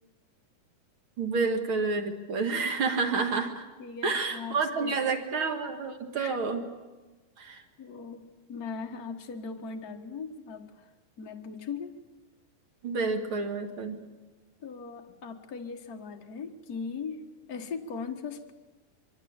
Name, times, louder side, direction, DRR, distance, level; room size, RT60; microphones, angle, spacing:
voice 1, 1.2-3.7 4.0-6.6 7.4-7.6 12.8-14.0, right 4 dB, 45° right, 6 dB, 2.1 m, -29 dB
voice 2, 3.8-4.9 6.2-6.4 7.8-10.9 11.2-12.0 14.6-17.2 17.5-18.5, left 5 dB, 50° left, 3 dB, 1.0 m, -39 dB
24.0 x 23.5 x 8.9 m, 1.2 s
omnidirectional pair, 4.1 m